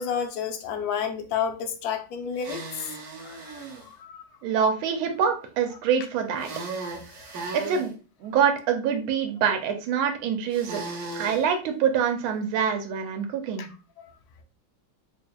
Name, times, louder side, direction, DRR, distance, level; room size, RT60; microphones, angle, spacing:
voice 1, 0.0-2.6 3.2-4.2 7.2-7.3 13.6-13.7, left 7 dB, 80° left, 0.8 m, -31 dB
sound 1, 2.4-3.9 6.4-7.9 10.5-11.4, right 3 dB, 60° right, 1.1 m, -36 dB
voice 2, 4.4-6.5 7.5-7.9 8.2-10.8 11.1-13.7, right 7 dB, 90° right, 1.5 m, -25 dB
3.8 x 3.4 x 2.2 m
omnidirectional pair, 2.2 m